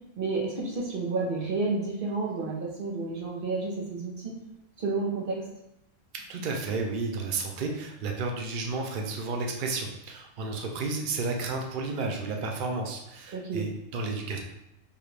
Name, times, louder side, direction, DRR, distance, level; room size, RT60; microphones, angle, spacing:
voice 1, 0.2-4.4 4.8-5.5 13.3-13.7, right 3 dB, 45° right, -3 dB, 0.9 m, -30 dB
voice 2, 6.1-14.4, right 3 dB, 85° right, 2 dB, 0.4 m, -32 dB
4.9 x 2.4 x 3.2 m, 0.86 s
omnidirectional pair, 1.5 m